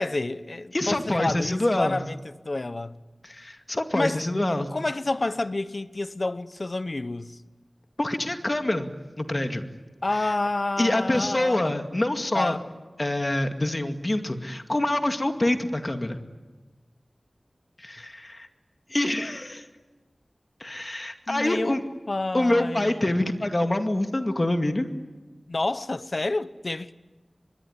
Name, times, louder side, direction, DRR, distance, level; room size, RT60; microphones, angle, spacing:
voice 1, 0.0-3.0 3.9-4.2 4.5-7.4 10.0-11.7 12.3-12.6 21.3-21.8 22.1-23.0 25.5-26.9, left 2 dB, 55° left, 0.9 m, -29 dB
voice 2, 0.7-2.0 3.2-4.7 8.0-8.9 9.2-9.7 10.2-10.3 10.8-12.6 13.0-16.2 17.8-18.5 18.9-19.6 20.6-21.8 22.3-24.9, left 1 dB, 40° left, 2.2 m, -26 dB
25.0 x 21.0 x 9.8 m
wide cardioid pair, 40°, 0 cm